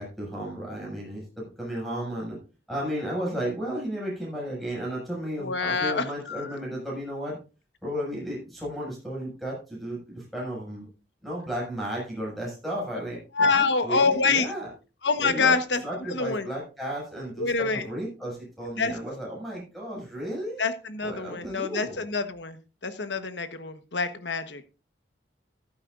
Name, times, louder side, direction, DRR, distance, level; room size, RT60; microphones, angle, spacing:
voice 1, 0.0-2.4 2.7-7.4 7.8-10.9 11.2-14.7 15.2-15.5 15.8-20.6 21.0-22.0, equal, ahead, -4 dB, 6.4 m, -34 dB
voice 2, 5.4-6.5 13.3-14.5 15.0-15.8 16.1-16.5 17.4-17.9 18.8-18.9 20.6-22.6 22.8-24.7, left 4 dB, 80° left, 10 dB, 1.3 m, -26 dB
14.0 x 12.0 x 2.6 m, 0.32 s
head